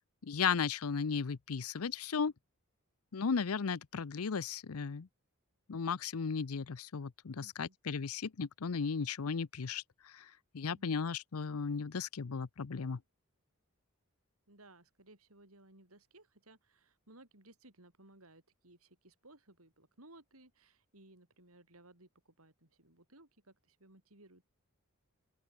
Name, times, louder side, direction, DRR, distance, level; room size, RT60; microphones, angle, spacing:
voice 1, 0.2-2.3 3.1-5.1 5.7-9.8 10.1-10.3 10.5-13.0, left 5 dB, 85° left, 0.6 m, -35 dB
voice 2, 7.3-7.8 14.5-24.4, right 2 dB, 80° right, 7.1 m, -61 dB
open air
head